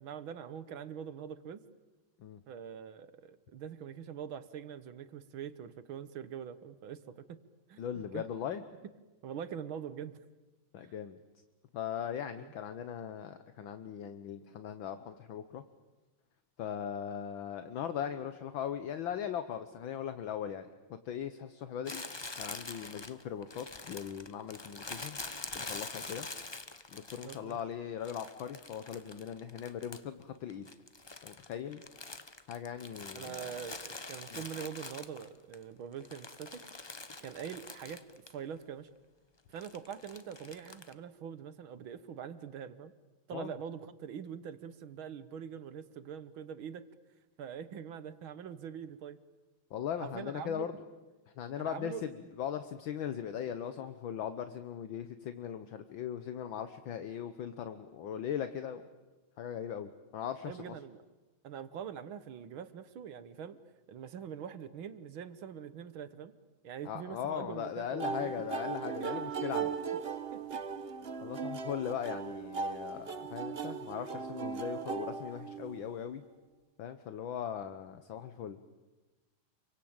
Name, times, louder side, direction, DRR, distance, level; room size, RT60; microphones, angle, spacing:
voice 1, 0.0-1.6 2.5-7.4 7.7-8.3 9.2-10.2 10.8-10.9 12.4-12.5 27.2-27.6 33.1-36.7 37.2-38.0 38.3-38.9 39.5-42.9 43.3-46.9 47.4-49.2 50.0-50.7 51.6-52.1 60.5-61.0 61.4-63.6 63.9-66.3 66.6-68.3 69.0-69.1 69.6-69.7 70.3-70.6, right 8 dB, 70° right, 13 dB, 1.9 m, -44 dB
voice 2, 7.8-8.6 10.7-11.2 11.7-15.6 16.6-22.0 22.4-25.2 25.5-26.3 26.9-30.7 31.2-31.8 32.5-33.4 34.3-34.4 43.3-43.5 49.7-50.7 51.4-58.8 59.4-60.8 66.8-69.8 71.2-76.2 76.8-78.6, left 9 dB, 65° left, 10 dB, 1.7 m, -39 dB
Crumpling crinkling, 21.8-27.6 28.0-30.2 30.5-35.5 35.9-38.4 38.6-38.7 39.6-40.9, left 3 dB, 45° left, 0.3 m, -45 dB
sound 1, 68.0-75.9, right 5 dB, 40° right, 1.0 m, -38 dB
28.0 x 24.0 x 8.9 m, 1.1 s
omnidirectional pair, 2.4 m